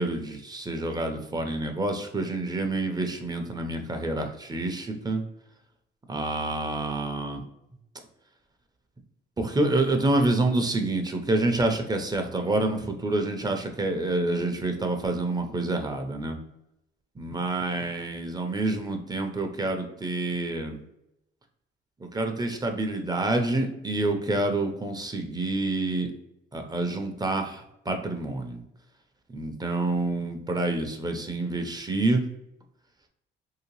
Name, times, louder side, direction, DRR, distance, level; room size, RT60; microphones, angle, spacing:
voice 1, 0.0-5.2 6.1-7.4 9.4-16.4 17.2-20.8 22.0-26.1 26.5-28.6 29.3-32.2, right 2 dB, 20° right, 5 dB, 0.6 m, -27 dB
3.2 x 2.8 x 3.0 m, 0.83 s
cardioid pair, 90°, 20 cm